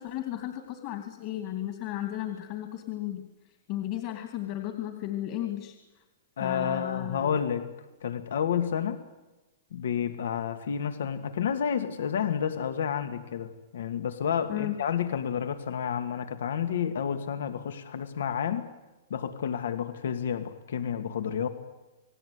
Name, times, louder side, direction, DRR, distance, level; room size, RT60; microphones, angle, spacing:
voice 1, 0.0-3.3 3.7-5.8 6.4-7.3 14.5-14.7, left 13 dB, 35° left, 6 dB, 2.8 m, -34 dB
voice 2, 6.4-7.7 8.0-9.0 9.7-18.7 19.1-21.5, left 8 dB, 75° left, 9 dB, 2.3 m, -30 dB
29.0 x 19.5 x 9.8 m, 1.1 s
hypercardioid pair, 165°, 0 cm